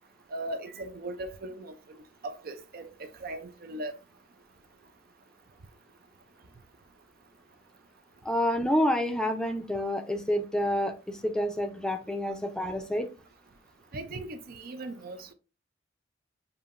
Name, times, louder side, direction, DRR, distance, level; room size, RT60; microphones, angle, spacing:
voice 1, 0.3-1.7 2.2-2.9 3.2-4.0 13.9-15.3, right 2 dB, 55° right, 0.5 m, -38 dB
voice 2, 8.2-13.1, left 1 dB, 5° left, 0.5 m, -28 dB
6.9 x 2.7 x 2.5 m
head